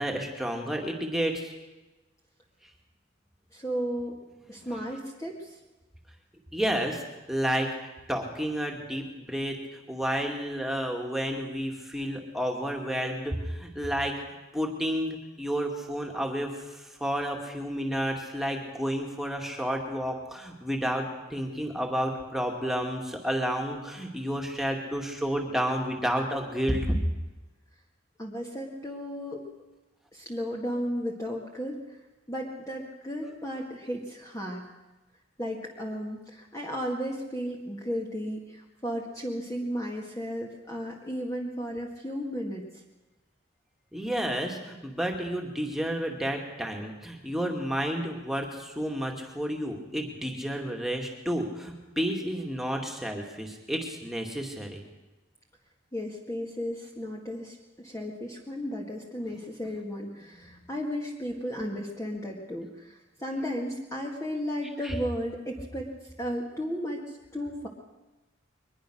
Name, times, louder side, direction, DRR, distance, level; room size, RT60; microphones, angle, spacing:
voice 1, 0.0-1.5 6.5-7.0 7.3-7.7 8.1-14.1 14.5-27.0 43.9-54.8 60.4-60.6 64.8-64.9, equal, ahead, 2 dB, 2.5 m, -31 dB
voice 2, 3.5-4.1 4.5-5.6 28.2-29.4 30.1-32.0 32.3-34.7 35.4-42.7 55.9-65.9 66.2-67.7, equal, 15° left, -1 dB, 2.0 m, -34 dB
22.5 x 20.5 x 6.5 m, 1.1 s
head